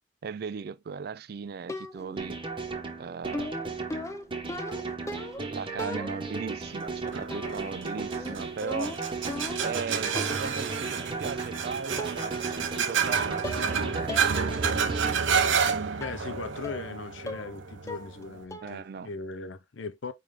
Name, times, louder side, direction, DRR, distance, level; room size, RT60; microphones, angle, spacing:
voice 1, 0.2-2.4 3.0-3.7 5.4-9.0 9.6-14.2 18.6-19.1, right 5 dB, 50° right, 0.3 m, -37 dB
sound 1, 1.7-2.2 3.3-5.5 5.8-6.4 7.3-7.7 8.0-9.8 10.2-10.5 11.5-11.6 12.0-12.4 12.7-13.1 13.4-13.8 14.1-14.3 14.7-14.8 16.0-16.2 16.6-16.9 17.3-17.6 17.9-18.2 18.5-18.8, left 1 dB, 15° left, 0.5 m, -38 dB
sound 2, 2.2-15.1, right 3 dB, 25° right, 1.0 m, -36 dB
sound 3, 7.1-18.4, right 6 dB, 70° right, 0.8 m, -30 dB
voice 2, 16.0-20.1, left 4 dB, 70° left, 0.6 m, -38 dB
5.1 x 3.3 x 3.1 m
head